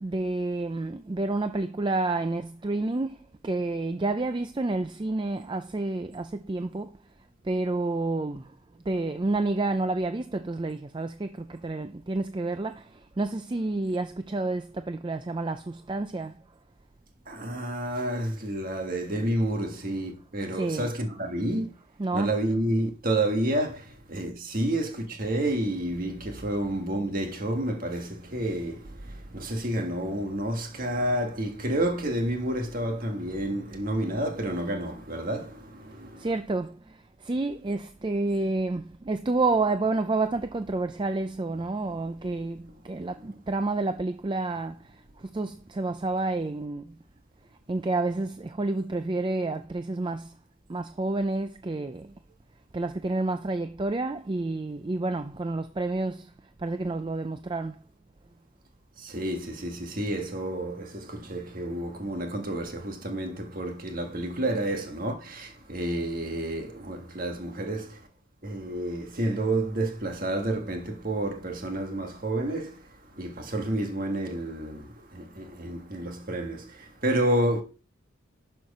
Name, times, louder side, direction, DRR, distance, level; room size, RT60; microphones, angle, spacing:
voice 1, 0.0-6.9 7.4-8.5 8.9-16.4 20.5-20.9 22.0-22.3 36.2-46.9 47.7-50.4 50.7-52.1 52.7-56.3 56.6-57.8, right 2 dB, 20° right, 0.4 m, -29 dB
voice 2, 17.2-21.7 22.1-36.3 43.1-43.2 59.0-68.1 68.4-77.6, right 1 dB, 40° right, 1.6 m, -30 dB
11.5 x 4.5 x 5.4 m
head